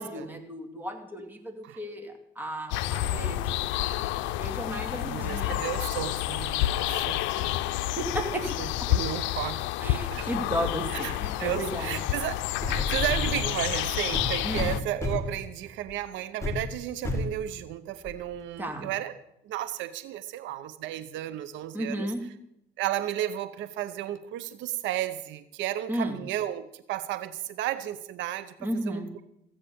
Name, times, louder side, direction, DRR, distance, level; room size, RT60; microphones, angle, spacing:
voice 1, 0.0-3.6 4.2-5.6 7.8-8.6 9.8-12.0 14.4-14.7 18.6-18.9 21.7-22.2 25.9-26.2 28.6-29.1, right 1 dB, 10° right, 4 dB, 2.5 m, -34 dB
sound 1, 2.7-14.8, left 14 dB, 90° left, 0.5 m, -29 dB
voice 2, 3.0-3.4 4.9-7.7 8.6-9.7 10.1-10.3 10.9-12.4 12.7-19.2 19.4-22.1 22.8-28.5 28.9-29.0, right 12 dB, 80° right, 13 dB, 0.7 m, -33 dB
sound 2, 12.6-13.5 14.1-15.4 15.9-16.0 16.4-16.6 17.0-17.4 18.1-18.2, left 2 dB, 15° left, 2.4 m, -30 dB
15.0 x 8.7 x 6.9 m, 0.79 s
cardioid pair, 95°, 19 cm